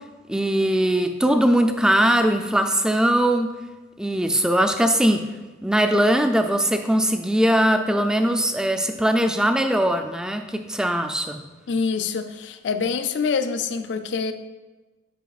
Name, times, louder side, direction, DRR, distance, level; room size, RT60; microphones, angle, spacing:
voice 1, 0.3-3.5 4.0-5.2 5.6-11.4, right 1 dB, 5° right, 6 dB, 0.3 m, -20 dB
voice 2, 11.7-14.3, left 5 dB, 75° left, 9 dB, 0.4 m, -25 dB
9.1 x 4.9 x 2.3 m, 1.2 s
head